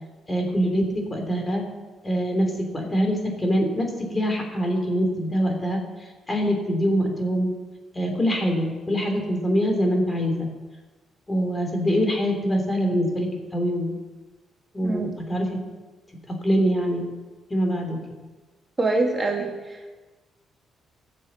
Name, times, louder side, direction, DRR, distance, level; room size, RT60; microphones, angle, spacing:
voice 1, 0.3-1.6 2.0-7.5 7.9-10.5 11.3-14.0 14.7-15.5 16.3-17.1 17.5-18.0, equal, 20° left, 3 dB, 3.2 m, -24 dB
voice 2, 18.8-20.0, right 2 dB, 25° right, 1 dB, 1.8 m, -25 dB
14.0 x 7.6 x 6.5 m, 1.3 s
cardioid pair, 90°, 0 cm